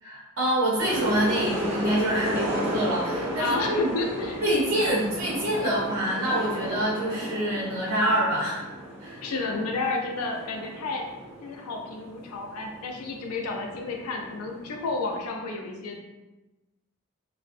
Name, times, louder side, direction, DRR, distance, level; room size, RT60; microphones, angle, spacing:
voice 1, 0.0-3.9 4.4-8.6 9.0-9.2, right 1 dB, 85° right, -6 dB, 0.6 m, -26 dB
sound 1, 0.8-15.3, equal, 10° right, 0.4 m, -34 dB
voice 2, 3.4-4.5 9.2-11.1 11.4-16.0, left 3 dB, 85° left, 2 dB, 0.4 m, -31 dB
2.5 x 2.0 x 2.5 m, 1.1 s
head